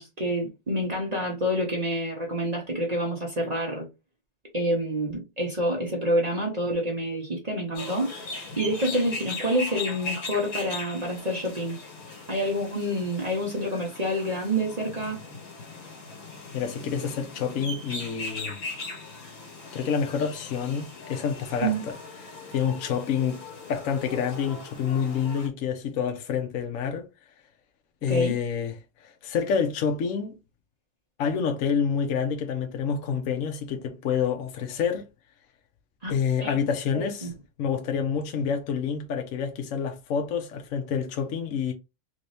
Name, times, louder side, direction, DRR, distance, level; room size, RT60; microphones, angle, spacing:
voice 1, 0.0-3.9 4.5-8.1 8.6-11.8 12.3-15.2 21.6-21.8 28.1-28.4 36.0-36.1 36.4-36.5 36.9-37.3, equal, 80° right, 0.3 m, -27 dB
sound 1, 7.7-25.5, left 3 dB, 50° left, 1.9 m, -39 dB
voice 2, 16.5-18.6 19.7-22.0 22.2-23.4 23.7-27.1 28.0-28.8 29.0-30.4 31.2-35.1 36.1-37.3 37.6-41.7, left 7 dB, 70° left, 0.7 m, -28 dB
3.5 x 2.7 x 3.3 m
omnidirectional pair, 2.3 m